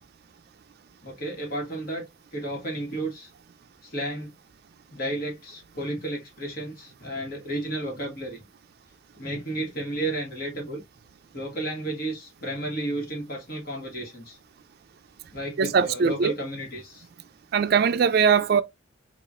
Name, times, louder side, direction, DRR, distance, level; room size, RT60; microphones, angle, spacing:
voice 1, 1.0-2.1 2.3-3.3 3.8-4.3 4.9-8.4 9.1-10.8 11.3-14.4 15.3-17.1, right 1 dB, 50° left, 1.3 m, -32 dB
voice 2, 15.6-16.3 17.5-18.6, right 6 dB, 50° right, 0.3 m, -21 dB
5.7 x 2.4 x 2.4 m
head